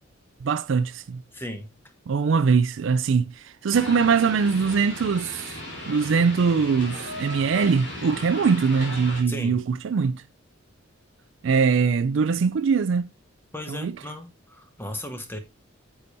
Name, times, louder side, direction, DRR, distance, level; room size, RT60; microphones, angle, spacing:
voice 1, 0.4-1.2 2.1-5.6 5.9-10.2 11.4-13.1 13.7-14.0, right 5 dB, 65° right, 0.4 m, -22 dB
voice 2, 1.3-1.7 9.3-9.6 13.5-15.4, left 1 dB, 10° left, 1.0 m, -36 dB
sound 1, 3.7-9.2, left 1 dB, 55° left, 3.4 m, -36 dB
9.7 x 6.9 x 2.6 m
head